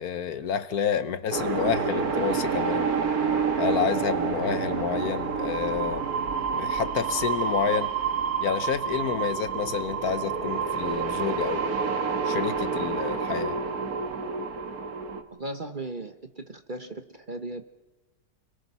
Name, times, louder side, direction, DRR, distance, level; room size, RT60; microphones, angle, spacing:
voice 1, 0.0-2.9 3.6-6.1 6.5-7.9 8.4-11.7 12.2-13.6, left 7 dB, 65° left, 12 dB, 1.4 m, -29 dB
sound 1, 1.3-15.2, right 5 dB, 60° right, 2.0 m, -28 dB
voice 2, 15.4-17.6, right 2 dB, 30° right, 7 dB, 1.3 m, -37 dB
30.0 x 21.5 x 5.7 m, 1.1 s
omnidirectional pair, 1.8 m